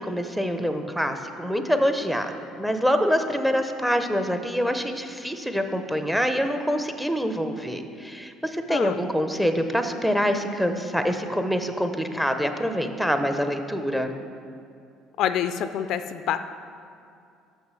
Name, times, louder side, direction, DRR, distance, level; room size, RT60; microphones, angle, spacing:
voice 1, 0.0-14.1, equal, 5° right, 7 dB, 0.5 m, -25 dB
voice 2, 15.2-16.4, left 10 dB, 60° left, 10 dB, 0.3 m, -26 dB
6.3 x 6.1 x 6.2 m, 2.4 s
cardioid pair, 125°, 0 cm